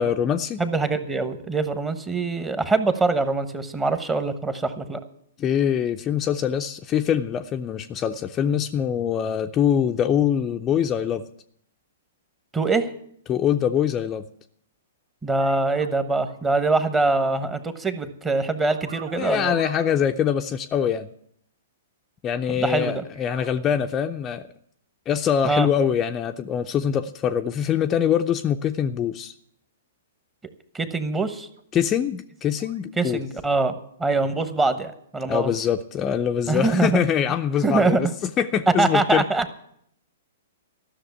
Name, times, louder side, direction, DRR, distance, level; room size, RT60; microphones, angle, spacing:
voice 1, 0.0-0.6 5.4-11.3 13.3-14.2 19.2-21.1 22.2-24.5 25.1-29.3 31.7-33.2 35.3-38.1 38.4-39.3, left 8 dB, 25° left, 6 dB, 0.5 m, -23 dB
voice 2, 0.6-5.0 12.5-12.9 15.2-19.6 22.5-23.0 25.4-25.7 30.7-31.5 33.0-33.7 34.0-35.5 36.5-37.0 37.6-38.0 38.8-39.4, right 3 dB, 15° right, 10 dB, 1.1 m, -23 dB
sound 1, 15.3-15.9 16.2-16.4 18.3-20.0 23.0-23.5 31.6-31.7 32.6-32.8, right 4 dB, 70° right, 1.1 m, -42 dB
13.5 x 6.5 x 9.4 m, 0.70 s
figure-of-eight pair, 115°, 0 cm